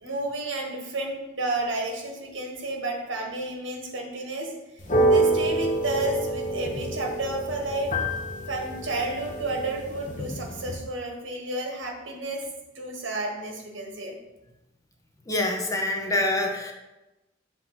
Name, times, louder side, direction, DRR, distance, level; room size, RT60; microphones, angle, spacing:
voice 1, 0.0-4.5 5.0-7.9 8.5-12.4 12.7-14.2, right 2 dB, 80° right, 1 dB, 1.5 m, -31 dB
sound 1, 4.8-10.8, right 1 dB, 40° left, 0.9 m, -27 dB
voice 2, 15.3-16.7, left 1 dB, 15° left, 1 dB, 0.8 m, -26 dB
7.6 x 2.8 x 5.9 m, 1.0 s
head